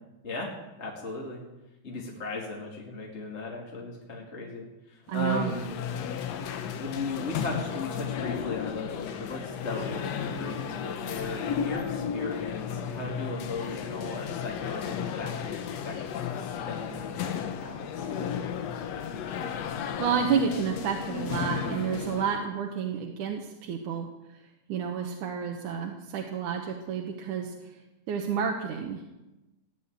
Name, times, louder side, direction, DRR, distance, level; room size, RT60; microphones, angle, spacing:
voice 1, 0.8-1.4 1.8-5.7 6.8-18.1, left 3 dB, 25° left, -2 dB, 2.1 m, -37 dB
sound 1, 5.1-22.4, left 7 dB, 65° left, 2.0 m, -34 dB
voice 2, 5.1-5.5 20.0-24.4 24.7-27.8 28.1-29.0, right 7 dB, 80° right, 2 dB, 2.7 m, -30 dB
16.5 x 9.2 x 9.2 m, 1.0 s
omnidirectional pair, 3.6 m